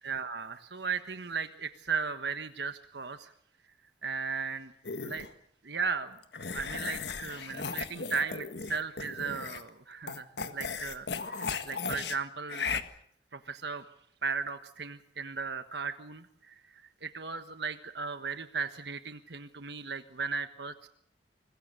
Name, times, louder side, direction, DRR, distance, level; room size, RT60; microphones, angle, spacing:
voice 1, 0.0-3.3 4.0-4.7 5.0-5.3 5.6-6.2 6.5-12.8 13.3-13.8 14.2-20.9, right 5 dB, 65° right, 9 dB, 1.3 m, -36 dB
sound 1, 4.8-5.3 6.3-9.7 10.1-12.2 12.5-12.8, left 5 dB, 65° left, 1.7 m, -36 dB
25.5 x 21.5 x 6.8 m, 0.69 s
head